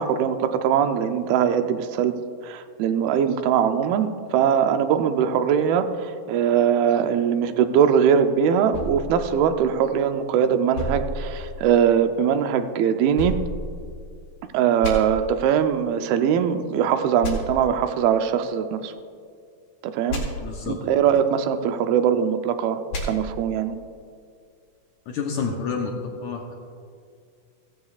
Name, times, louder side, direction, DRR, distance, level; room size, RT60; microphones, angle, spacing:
voice 1, 0.0-2.2 2.4-13.4 14.5-18.9 19.8-20.2 20.7-23.8, right 8 dB, 90° right, 8 dB, 2.5 m, -21 dB
sound 1, 8.7-10.2 10.7-12.0 13.2-14.3 14.8-14.9 17.2-17.3 20.1-20.2 22.9-23.0, left 1 dB, 90° left, 4.1 m, -32 dB
voice 2, 20.4-20.8 25.1-25.9 26.2-26.5, left 5 dB, 75° left, 0 dB, 1.9 m, -29 dB
16.0 x 14.5 x 2.4 m, 2.2 s
omnidirectional pair, 4.2 m